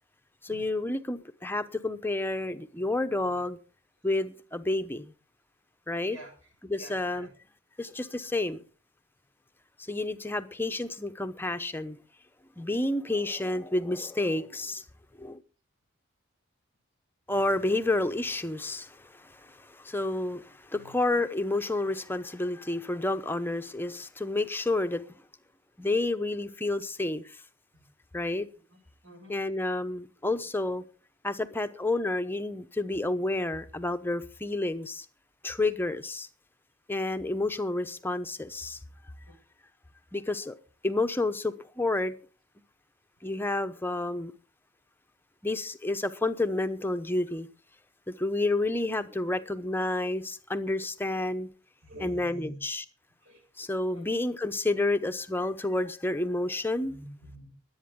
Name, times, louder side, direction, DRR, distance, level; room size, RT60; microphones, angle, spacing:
voice 1, 0.4-3.6 4.0-5.1 5.9-6.2 6.6-7.3 7.8-8.6 9.8-12.0 12.6-14.8 15.2-15.4 17.3-25.0 25.8-27.4 28.1-28.5 29.3-30.8 31.2-35.1 35.4-36.3 36.9-38.8 40.1-40.5 40.8-42.1 43.2-44.3 45.4-47.5 48.1-51.5 52.0-52.8 53.6-56.9, left 2 dB, 10° left, 9 dB, 0.8 m, -30 dB
voice 2, 6.7-7.3 20.7-21.0 27.7-27.8 28.7-29.3 39.3-39.4 51.8-52.6 53.2-53.4 53.9-54.0 56.8-57.5, right 1 dB, 70° right, 2 dB, 7.2 m, -47 dB
23.0 x 8.7 x 3.7 m, 0.37 s
head